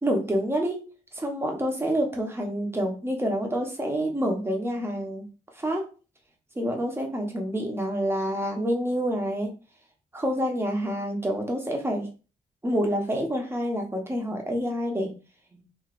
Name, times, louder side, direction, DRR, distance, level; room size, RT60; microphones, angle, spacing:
voice 1, 0.0-5.3 5.5-5.9 6.5-9.5 10.1-12.1 12.6-15.1 15.5-15.6, equal, 15° right, 2 dB, 0.9 m, -28 dB
3.0 x 2.7 x 2.5 m, 0.34 s
cardioid pair, 80°, 15 cm